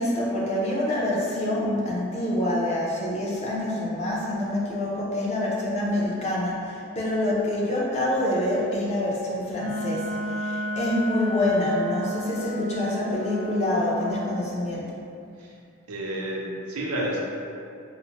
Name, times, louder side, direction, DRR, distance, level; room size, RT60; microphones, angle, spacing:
voice 1, 0.0-14.9, left 1 dB, 30° left, -5 dB, 0.5 m, -26 dB
Wind instrument woodwind instrument, 9.5-14.3, equal, 80° left, 0.6 m, -31 dB
voice 2, 15.9-17.2, right 1 dB, 85° right, -2 dB, 0.6 m, -30 dB
4.0 x 2.1 x 2.8 m, 2.4 s
head